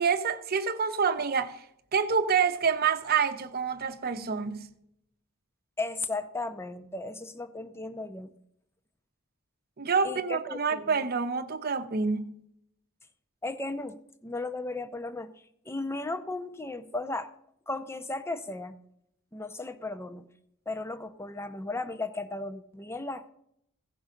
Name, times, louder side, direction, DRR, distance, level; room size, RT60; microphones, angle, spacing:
voice 1, 0.0-1.6 1.9-4.7 9.8-12.3, right 6 dB, 45° right, 0.8 m, -27 dB
voice 2, 5.8-8.3 10.0-11.0 13.4-15.3 15.7-17.3 17.7-18.7 19.3-20.3 20.7-23.3, left 2 dB, 10° left, 0.6 m, -35 dB
15.5 x 5.5 x 5.0 m
head